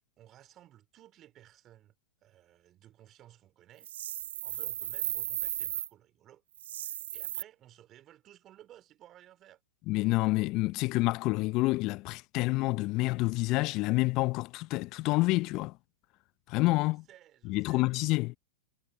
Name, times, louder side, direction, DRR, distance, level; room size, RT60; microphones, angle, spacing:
voice 1, 0.2-1.9 2.2-6.4 6.8-9.6 16.9-18.0, right 12 dB, 35° right, 3.6 m, -57 dB
sound 1, 3.8-5.9 6.5-7.4, right 12 dB, 65° right, 0.6 m, -35 dB
voice 2, 9.9-15.7 16.5-17.0 17.4-18.4, left 21 dB, 45° left, 0.6 m, -28 dB
hypercardioid pair, 100°, 0 cm